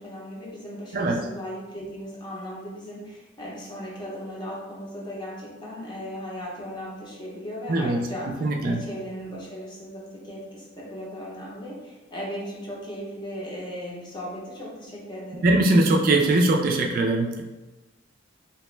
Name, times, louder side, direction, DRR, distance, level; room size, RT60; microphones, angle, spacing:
voice 1, 0.0-15.5, equal, 25° left, -4 dB, 0.7 m, -37 dB
voice 2, 0.9-1.2 7.7-8.0 8.4-8.8 15.4-17.4, right 2 dB, 45° right, 1 dB, 0.3 m, -21 dB
2.9 x 2.1 x 3.2 m, 1.1 s
head